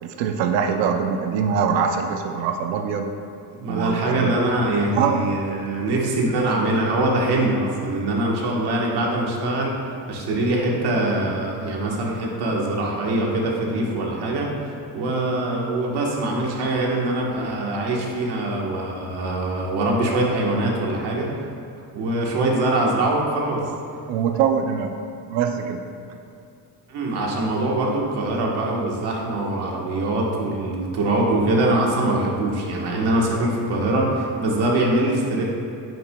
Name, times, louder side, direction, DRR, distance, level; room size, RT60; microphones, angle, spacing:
voice 1, 0.0-3.1 3.7-4.3 4.9-5.3 24.1-24.9 25.3-25.8, right 7 dB, 85° right, 4 dB, 0.6 m, -23 dB
voice 2, 3.5-21.4 21.9-23.6 26.9-35.4, right 1 dB, 65° right, -2 dB, 1.3 m, -23 dB
9.0 x 6.0 x 2.3 m, 2.6 s
cardioid pair, 150°, 42 cm